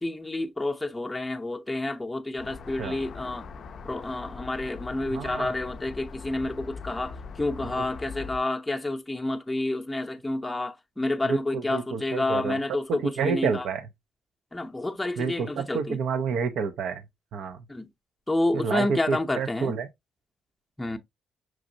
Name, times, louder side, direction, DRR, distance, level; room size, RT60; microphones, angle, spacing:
voice 1, 0.0-3.4 3.8-13.7 14.5-16.0 17.7-17.9 18.3-19.8 20.8-21.0, left 2 dB, 10° left, 0.6 m, -29 dB
sound 1, 2.4-8.4, left 5 dB, 55° left, 0.4 m, -41 dB
voice 2, 5.1-5.5 11.2-12.6 12.9-13.9 15.2-17.0 17.3-17.6 18.5-19.9, right 6 dB, 80° right, 0.5 m, -29 dB
6.0 x 2.5 x 2.7 m
cardioid pair, 90°, 0 cm